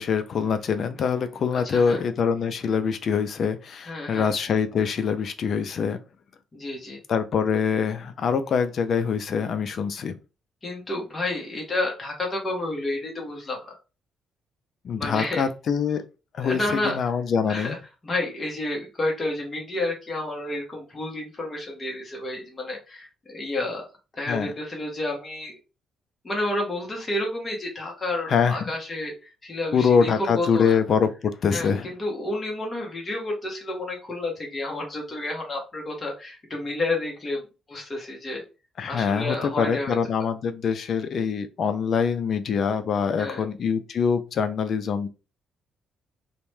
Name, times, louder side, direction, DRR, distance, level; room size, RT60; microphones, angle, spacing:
voice 1, 0.0-6.0 7.1-10.1 14.8-16.0 16.4-17.8 24.3-24.5 28.3-28.6 29.7-31.9 38.8-45.1, left 6 dB, 55° left, 0.4 m, -24 dB
voice 2, 1.5-2.0 3.9-4.3 6.5-7.0 10.6-13.7 14.9-15.5 16.4-17.0 17.5-17.8 18.0-23.8 24.1-25.5 26.2-30.8 31.5-37.4 37.7-38.4 38.9-40.0 43.2-43.4, left 2 dB, 25° left, 0.9 m, -30 dB
2.7 x 2.1 x 3.1 m
cardioid pair, 115°, 0 cm